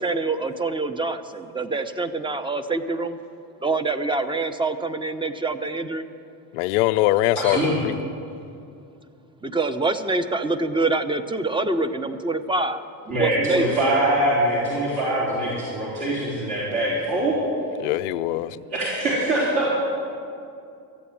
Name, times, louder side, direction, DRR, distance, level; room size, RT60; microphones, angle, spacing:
voice 1, 0.0-3.2 3.6-6.0 9.4-12.8 13.1-13.8, right 3 dB, 10° right, 9 dB, 0.7 m, -25 dB
voice 2, 6.5-8.0 17.8-18.6, left 16 dB, 80° left, 12 dB, 0.5 m, -22 dB
voice 3, 7.4-7.8 13.1-17.4 18.7-19.8, right 1 dB, 55° right, -8 dB, 4.4 m, -23 dB
14.0 x 8.3 x 8.6 m, 2.5 s
supercardioid pair, 85°, 45 cm